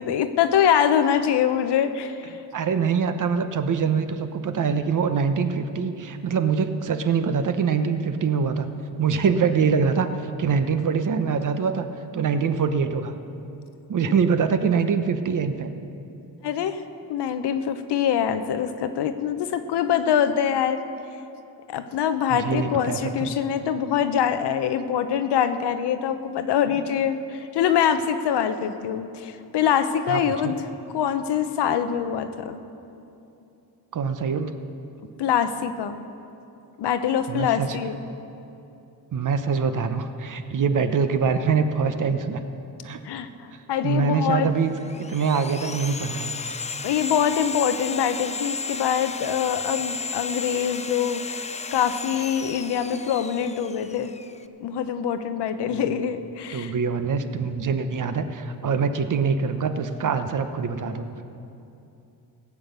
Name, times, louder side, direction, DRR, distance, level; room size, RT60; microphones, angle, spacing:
voice 1, 0.0-2.3 14.1-14.2 16.4-16.8 17.1-20.8 21.7-30.7 30.9-32.6 35.2-36.0 36.8-38.0 43.0-44.5 46.8-51.4 51.7-54.1 54.6-56.7, left 8 dB, 85° left, 10 dB, 0.9 m, -24 dB
voice 2, 2.5-8.7 9.0-10.1 10.4-11.9 12.1-13.1 13.9-15.7 22.3-23.3 30.1-30.6 33.9-34.5 37.3-37.7 39.1-42.4 42.8-43.0 43.8-46.4 55.7-55.9 56.5-61.2, right 5 dB, 50° right, 9 dB, 1.0 m, -24 dB
Sawing, 44.6-54.4, left 4 dB, 20° left, 0.4 m, -34 dB
16.5 x 8.4 x 6.7 m, 2.8 s
cardioid pair, 100°, 40 cm